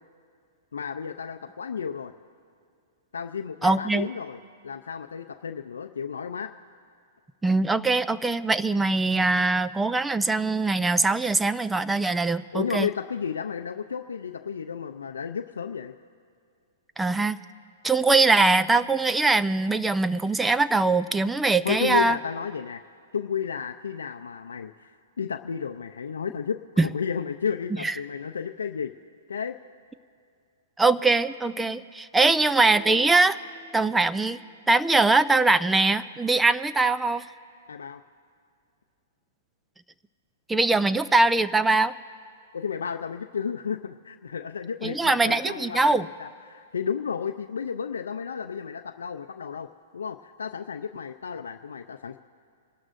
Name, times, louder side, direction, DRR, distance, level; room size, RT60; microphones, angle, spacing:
voice 1, 0.7-2.1 3.1-4.4 4.6-6.5 12.5-15.9 21.6-22.8 23.1-28.9 29.3-29.6 37.7-38.0 42.5-52.2, left 7 dB, 85° left, 6 dB, 0.5 m, -32 dB
voice 2, 3.6-4.1 7.4-12.9 17.0-17.4 17.8-22.2 26.8-26.9 27.8-27.9 30.8-33.4 33.7-34.4 34.7-37.2 40.5-41.9 44.8-46.1, right 3 dB, 10° right, 14 dB, 0.4 m, -22 dB
sound 1, 32.7-34.5, right 2 dB, 40° right, 2.5 m, -45 dB
27.5 x 12.5 x 2.6 m, 2.3 s
hypercardioid pair, 130°, 0 cm